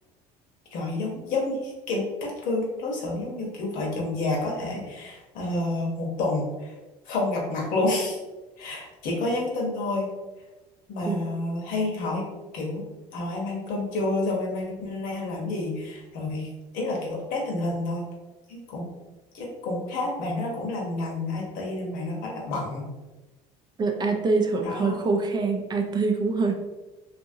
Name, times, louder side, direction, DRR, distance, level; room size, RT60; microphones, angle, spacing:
voice 1, 0.7-6.7 7.1-8.2 8.6-10.1 10.9-12.2 12.5-12.8 13.1-16.5 16.7-18.0 18.5-18.9 19.3-22.9 24.6-25.0, left 2 dB, 70° left, -2 dB, 0.9 m, -29 dB
voice 2, 23.8-26.5, right 3 dB, 30° right, 3 dB, 0.4 m, -24 dB
2.8 x 2.5 x 2.7 m, 1.1 s
cardioid pair, 110°, 15 cm